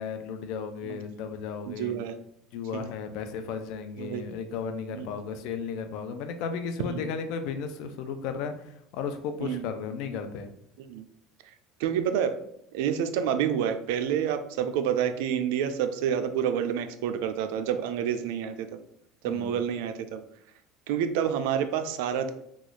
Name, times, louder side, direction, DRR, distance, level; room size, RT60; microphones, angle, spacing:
voice 1, 0.0-2.0 2.5-8.5 8.9-10.5 19.3-19.6, left 6 dB, 70° left, 8 dB, 0.5 m, -34 dB
voice 2, 1.7-2.2 2.7-2.9 4.0-4.3 4.9-5.1 6.8-7.1 9.4-9.7 10.9-11.1 11.8-12.3 12.7-18.8 19.2-20.2 20.9-22.3, right 8 dB, 80° right, 9 dB, 0.4 m, -28 dB
3.0 x 2.3 x 3.9 m, 0.73 s
supercardioid pair, 120°, 0 cm